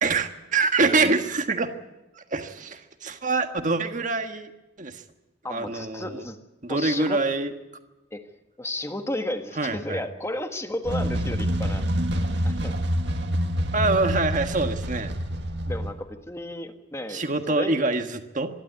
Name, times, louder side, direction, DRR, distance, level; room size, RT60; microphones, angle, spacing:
voice 1, 0.0-1.7 2.1-4.5 4.8-5.0 5.5-6.2 6.6-7.5 9.6-10.0 13.7-15.1 17.1-18.5, right 3 dB, 40° right, 7 dB, 1.5 m, -25 dB
voice 2, 5.4-6.4 6.7-7.2 8.1-8.3 8.6-11.8 12.4-12.7 15.7-17.9, left 1 dB, 15° left, 6 dB, 1.5 m, -33 dB
sound 1, 10.8-15.9, equal, 60° right, 1.9 m, -27 dB
26.0 x 12.0 x 9.3 m, 1.0 s
head